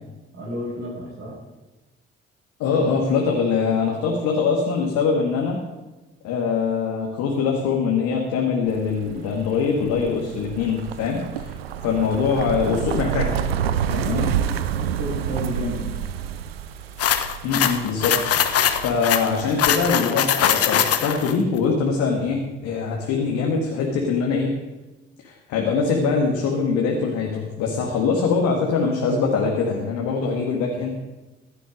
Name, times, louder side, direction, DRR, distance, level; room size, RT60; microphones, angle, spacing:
voice 1, 0.3-1.4 13.8-14.3 14.8-15.9, equal, 60° right, -2 dB, 6.5 m, -32 dB
voice 2, 2.6-5.6 6.2-13.4 13.9-14.3 17.4-18.5 18.8-24.5 25.2-30.9, left 5 dB, 70° left, 0 dB, 2.0 m, -23 dB
sound 1, 8.7-19.9, right 8 dB, 90° right, 0.6 m, -29 dB
sound 2, 17.0-21.3, left 9 dB, 55° left, 1.2 m, -21 dB
16.0 x 11.5 x 5.1 m, 1.1 s
hypercardioid pair, 45°, 29 cm